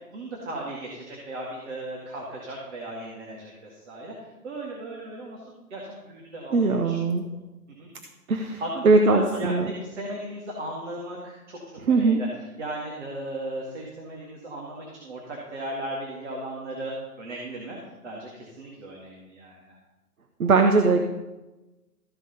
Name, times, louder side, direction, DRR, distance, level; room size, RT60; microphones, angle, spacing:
voice 1, 0.1-6.6 6.8-7.2 7.8-7.9 8.6-12.3 12.6-19.8, right 1 dB, 45° right, -2 dB, 2.4 m, -36 dB
voice 2, 6.5-7.2 8.3-9.7 11.9-12.2 20.4-21.0, right 3 dB, 60° right, 5 dB, 1.1 m, -20 dB
14.5 x 5.0 x 5.6 m, 1.1 s
hypercardioid pair, 155°, 47 cm